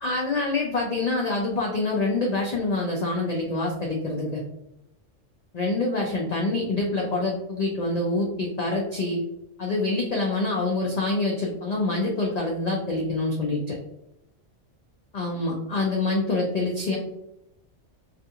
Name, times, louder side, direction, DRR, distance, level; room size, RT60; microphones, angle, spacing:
voice 1, 0.0-4.4 5.5-9.2 9.6-13.8 15.1-17.0, left 2 dB, 75° left, -1 dB, 0.3 m, -26 dB
2.4 x 2.3 x 2.7 m, 0.82 s
omnidirectional pair, 1.2 m